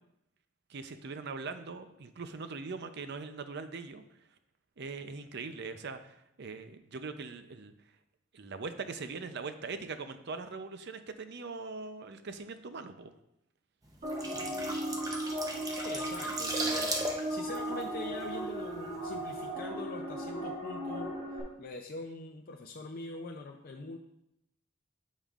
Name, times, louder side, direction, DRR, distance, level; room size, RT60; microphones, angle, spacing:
voice 1, 0.7-4.0 4.8-7.7 8.3-13.1 14.3-14.8, right 4 dB, 60° right, 9 dB, 0.6 m, -41 dB
sound 1, 13.9-18.8 19.1-19.3, right 2 dB, 20° right, 0.7 m, -37 dB
sound 2, 14.0-21.4, right 1 dB, 35° right, 2.1 m, -36 dB
voice 2, 15.7-21.1 21.6-24.0, left 3 dB, 50° left, 1 dB, 0.5 m, -43 dB
8.7 x 7.3 x 2.5 m, 0.82 s
head